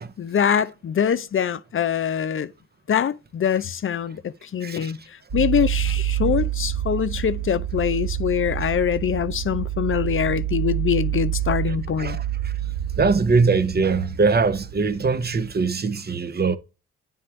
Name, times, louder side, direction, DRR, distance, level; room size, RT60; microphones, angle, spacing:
voice 1, 0.2-2.5 2.9-12.2, left 8 dB, 45° left, 0.6 m, -24 dB
voice 2, 4.6-4.9 12.0-12.5 13.0-16.6, right 4 dB, 35° right, 0.8 m, -22 dB
sound 1, 5.3-15.5, right 12 dB, 65° right, 2.1 m, -28 dB
9.6 x 3.5 x 3.2 m
supercardioid pair, 50°, 29 cm